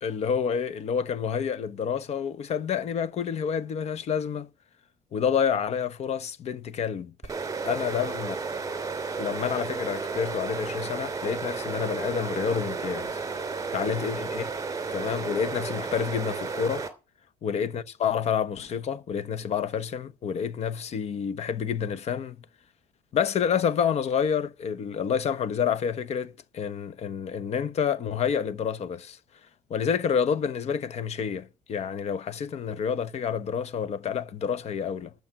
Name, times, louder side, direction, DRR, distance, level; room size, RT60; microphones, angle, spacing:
voice 1, 0.0-4.5 5.1-7.1 7.6-8.3 9.2-14.5 14.9-16.8 17.4-22.4 23.1-29.2 29.7-35.1, left 7 dB, 50° left, 0.9 m, -28 dB
sound 1, 7.2-16.9, right 4 dB, 25° right, 2.6 m, -33 dB
12.0 x 7.0 x 8.9 m
cardioid pair, 130°, 14 cm